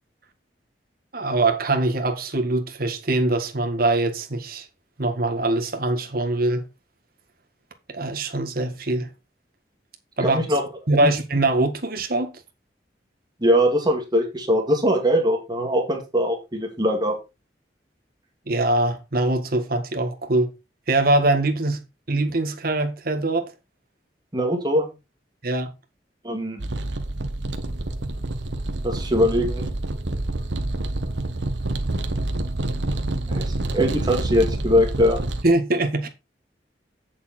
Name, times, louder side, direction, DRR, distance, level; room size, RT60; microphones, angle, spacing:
voice 1, 1.1-4.6 5.0-6.6 7.9-9.1 10.2-10.4 10.9-12.3 18.5-20.5 20.9-21.8 22.1-23.5 25.4-25.7 35.4-36.1, right 2 dB, 55° right, 1.8 m, -22 dB
voice 2, 10.2-10.6 11.0-11.1 13.4-17.1 24.3-24.9 26.2-26.6 28.8-29.7 33.3-35.2, equal, 25° right, 2.2 m, -21 dB
sound 1, 26.6-35.4, right 2 dB, 80° right, 1.4 m, -27 dB
8.8 x 7.0 x 4.3 m
head